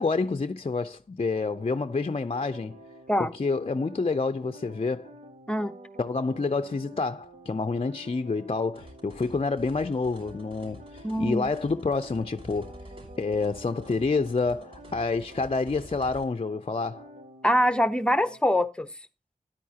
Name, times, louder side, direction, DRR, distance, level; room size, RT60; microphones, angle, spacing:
voice 1, 0.0-2.8 3.2-5.1 6.0-12.7 13.2-17.1, left 4 dB, 45° left, 0.5 m, -28 dB
sound 1, 1.3-18.4, right 1 dB, 80° right, 3.2 m, -49 dB
sound 2, 8.8-16.3, equal, 40° right, 5.9 m, -48 dB
voice 2, 11.0-11.4 17.4-18.9, equal, 5° left, 1.0 m, -24 dB
13.5 x 10.5 x 2.8 m
wide cardioid pair, 60°, 14 cm